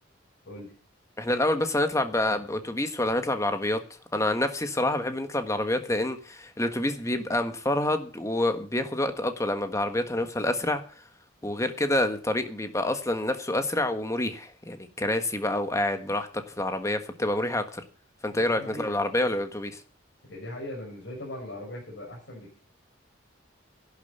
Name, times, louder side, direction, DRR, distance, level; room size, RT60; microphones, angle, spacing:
voice 1, 1.2-3.8 4.1-11.0 11.4-17.8 18.2-19.8, left 1 dB, 15° left, 8 dB, 1.4 m, -27 dB
voice 2, 18.3-19.0 20.2-22.6, left 1 dB, 60° left, -2 dB, 6.4 m, -39 dB
11.5 x 10.5 x 6.8 m, 0.39 s
head